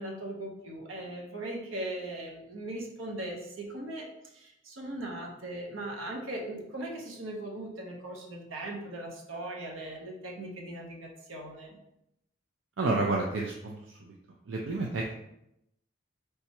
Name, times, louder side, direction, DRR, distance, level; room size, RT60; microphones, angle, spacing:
voice 1, 0.0-4.1 4.3-11.8, right 1 dB, 85° right, 0 dB, 0.9 m, -39 dB
voice 2, 12.8-14.1 14.5-15.1, right 2 dB, 70° right, -1 dB, 0.5 m, -30 dB
3.4 x 2.9 x 4.4 m, 0.81 s
head